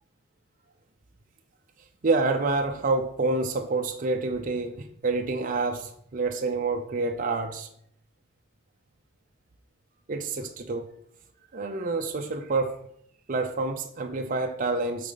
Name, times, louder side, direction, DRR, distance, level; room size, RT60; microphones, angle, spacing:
voice 1, 2.0-7.7 10.1-10.9 11.5-12.8 13.3-15.1, right 3 dB, 40° right, 0.5 m, -28 dB
8.5 x 4.2 x 4.0 m
head